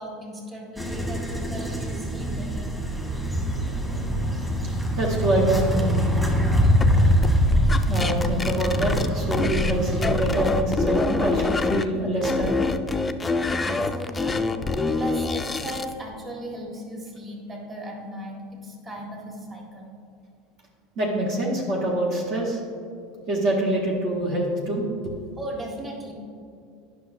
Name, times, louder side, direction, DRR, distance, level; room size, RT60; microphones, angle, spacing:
voice 1, 0.0-2.6 13.4-14.4 14.9-19.9 25.4-26.1, right 1 dB, 30° right, -1 dB, 1.6 m, -37 dB
sound 1, 0.8-10.6, equal, 10° right, 1.2 m, -24 dB
voice 2, 5.0-5.8 7.9-12.6 20.9-22.6 23.3-25.2, right 1 dB, 60° right, -3 dB, 1.3 m, -25 dB
sound 2, 6.8-9.8 10.0-11.8 12.2-15.9, left 3 dB, 15° left, 0.4 m, -25 dB
9.9 x 5.7 x 2.7 m, 2.4 s
hypercardioid pair, 85°, 0 cm